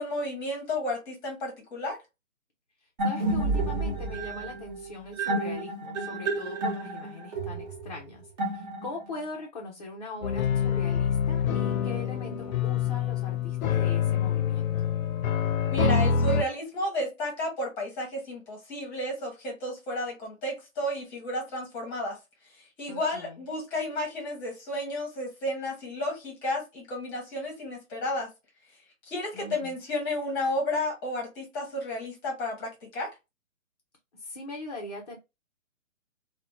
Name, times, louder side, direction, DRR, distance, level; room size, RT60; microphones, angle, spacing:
voice 1, 0.0-2.0 15.7-22.2 22.5-28.3 29.1-33.1, left 1 dB, 10° left, 0.8 m, -32 dB
voice 2, 2.8-8.3 8.5-14.9 22.9-23.4 29.3-29.7 34.1-35.2, left 2 dB, 30° left, 0.4 m, -41 dB
sound 1, 3.0-9.2, right 2 dB, 35° right, 0.9 m, -30 dB
sound 2, 10.2-16.4, left 7 dB, 90° left, 0.6 m, -26 dB
2.5 x 2.1 x 3.0 m
hypercardioid pair, 155°, 41 cm